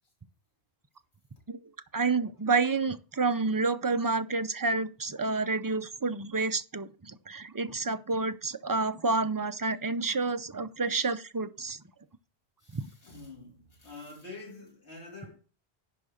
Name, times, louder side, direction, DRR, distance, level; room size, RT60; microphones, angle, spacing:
voice 1, 1.9-11.8 12.7-12.9, right 3 dB, 25° right, 0.5 m, -29 dB
voice 2, 12.6-15.4, left 3 dB, 80° left, 3.5 m, -47 dB
10.5 x 3.8 x 6.3 m
omnidirectional pair, 1.1 m